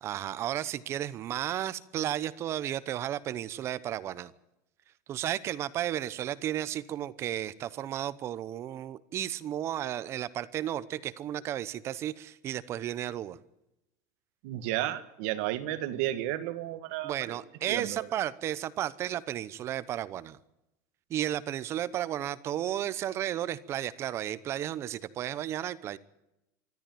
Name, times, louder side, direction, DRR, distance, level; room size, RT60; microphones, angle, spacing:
voice 1, 0.0-4.3 5.1-13.4 17.0-20.4 21.1-26.0, right 11 dB, 30° right, 0.9 m, -33 dB
voice 2, 14.4-17.4 17.7-18.1, right 14 dB, 60° right, 1.6 m, -33 dB
24.5 x 13.5 x 9.2 m
supercardioid pair, 160°, 9 cm